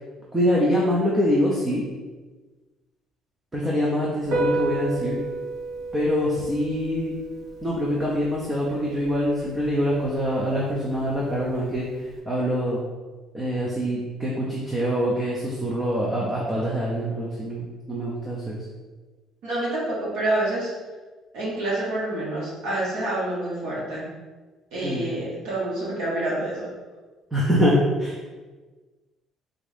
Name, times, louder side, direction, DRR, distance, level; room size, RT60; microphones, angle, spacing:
voice 1, 0.3-1.8 3.5-5.2 5.9-7.1 7.6-11.9 12.3-12.8 13.3-18.6 24.8-25.1 27.3-28.2, equal, 10° right, -5 dB, 0.4 m, -24 dB
Piano, 4.2-12.2, right 2 dB, 50° right, 0.8 m, -33 dB
voice 2, 19.4-20.7 21.3-24.1 24.7-26.7, right 1 dB, 75° right, -6 dB, 1.5 m, -27 dB
3.6 x 2.5 x 3.4 m, 1.3 s
cardioid pair, 180°, 0 cm